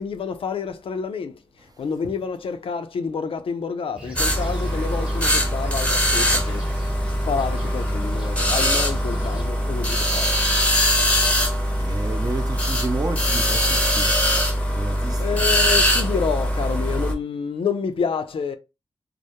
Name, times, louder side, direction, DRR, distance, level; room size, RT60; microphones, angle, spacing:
voice 1, 0.0-1.3 1.8-6.6 7.3-10.3 15.2-18.6, left 6 dB, 70° left, 0.4 m, -28 dB
Fixed-wing aircraft airplane, 4.0-9.5, equal, 10° right, 1.0 m, -38 dB
sound 1, 4.2-17.1, equal, 15° left, 0.6 m, -22 dB
voice 2, 11.0-14.2 14.7-15.4, right 3 dB, 40° right, 0.5 m, -32 dB
2.2 x 2.0 x 2.8 m
cardioid pair, 55°, 10 cm